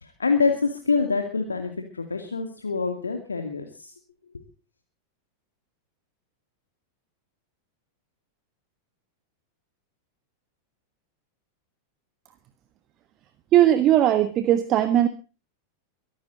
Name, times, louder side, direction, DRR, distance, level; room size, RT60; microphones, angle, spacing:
voice 1, 0.0-3.9, left 4 dB, 75° left, 5 dB, 2.4 m, -26 dB
voice 2, 13.5-15.1, right 12 dB, 35° right, 11 dB, 1.4 m, -18 dB
23.5 x 12.0 x 4.0 m, 0.35 s
figure-of-eight pair, 90°, 0 cm